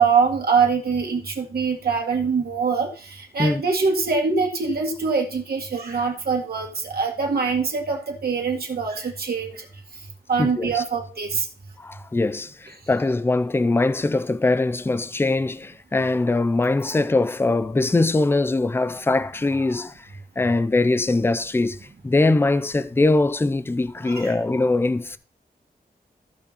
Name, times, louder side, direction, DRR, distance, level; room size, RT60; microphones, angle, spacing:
voice 1, 0.0-2.9 3.3-9.5 10.3-11.5 24.1-24.3, right 5 dB, 70° right, 1.9 m, -23 dB
voice 2, 10.4-10.8 11.8-20.1 20.4-21.8 22.0-25.2, left 2 dB, 15° left, 0.4 m, -22 dB
14.5 x 5.2 x 4.0 m
wide cardioid pair, 155°, 16 cm